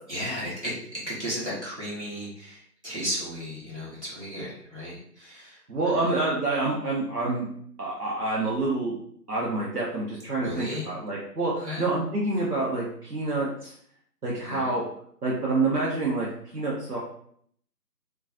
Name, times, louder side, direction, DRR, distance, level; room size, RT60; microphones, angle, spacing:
voice 1, 0.1-6.2 10.3-10.9 11.5-11.9 14.4-14.8, equal, 45° right, -8 dB, 1.0 m, -35 dB
voice 2, 5.7-7.5 7.8-9.0 9.3-13.7 14.2-14.8 15.2-16.3 16.5-17.0, right 2 dB, 70° right, -5 dB, 0.8 m, -27 dB
2.5 x 2.3 x 2.4 m, 0.63 s
figure-of-eight pair, 180°, 49 cm